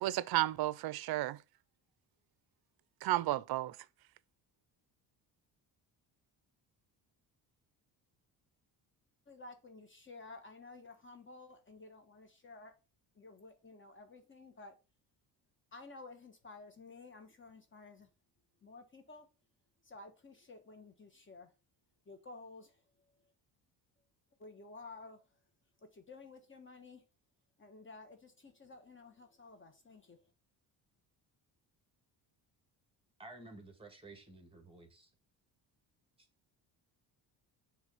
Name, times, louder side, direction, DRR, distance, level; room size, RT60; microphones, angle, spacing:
voice 1, 0.0-1.4 3.0-3.8, right 16 dB, 60° right, 0.5 m, -32 dB
voice 2, 9.3-12.7 13.2-14.7 15.7-18.1 18.6-19.3 19.8-21.5 22.1-22.7 24.4-25.2 25.9-27.0 27.6-30.2, left 3 dB, 25° left, 1.2 m, -53 dB
voice 3, 33.2-35.1, right 2 dB, 10° right, 1.6 m, -53 dB
6.2 x 3.3 x 5.4 m
cardioid pair, 105°, 44 cm